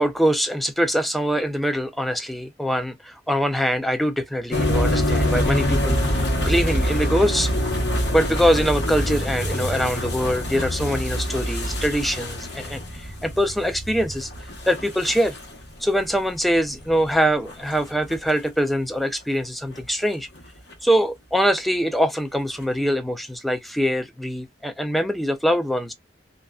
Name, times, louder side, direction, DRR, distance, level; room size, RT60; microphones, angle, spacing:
voice 1, 0.0-7.5 8.1-14.3 14.7-15.4 15.8-20.3 20.8-25.9, equal, ahead, 0.3 m, -23 dB
sound 1, 4.5-18.2 19.1-19.2 19.7-20.4 20.7-20.8 22.6-22.7, equal, 75° left, 1.1 m, -25 dB
2.5 x 2.1 x 2.3 m
head